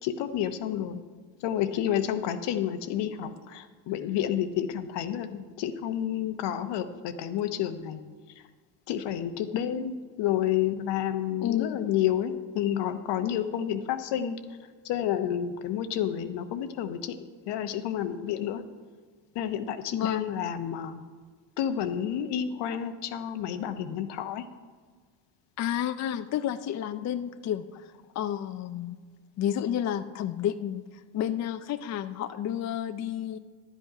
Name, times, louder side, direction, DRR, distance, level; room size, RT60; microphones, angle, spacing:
voice 1, 0.0-1.0 1.4-8.0 8.9-14.4 14.8-17.2 17.5-18.6 19.3-21.0 21.6-24.4, left 10 dB, 70° left, 10 dB, 0.9 m, -30 dB
voice 2, 11.4-11.8 19.9-20.3 25.6-29.0 29.4-33.4, left 10 dB, 40° left, 10 dB, 0.5 m, -31 dB
11.0 x 8.1 x 4.9 m, 1.5 s
supercardioid pair, 80°, 43 cm